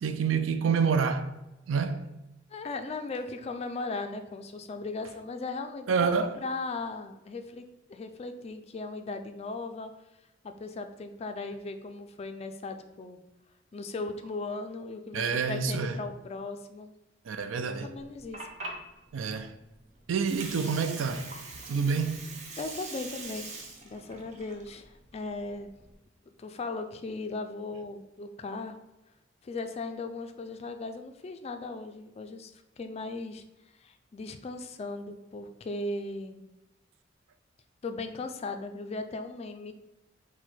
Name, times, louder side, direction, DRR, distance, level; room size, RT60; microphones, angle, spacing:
voice 1, 0.0-1.3 1.7-2.1 5.9-6.3 15.1-16.0 17.3-17.9 19.1-19.5 20.1-21.3 21.7-22.3, right 5 dB, 85° right, 0.4 m, -28 dB
voice 2, 2.5-9.9 10.4-13.2 13.7-16.9 17.5-18.4 22.6-23.6 23.8-25.7 26.4-28.8 29.4-32.5 32.8-33.4 33.8-36.5 37.8-39.7, left 3 dB, 35° left, 0.3 m, -37 dB
Water, 18.0-25.9, right 3 dB, 40° right, 0.6 m, -43 dB
4.5 x 2.2 x 4.1 m
head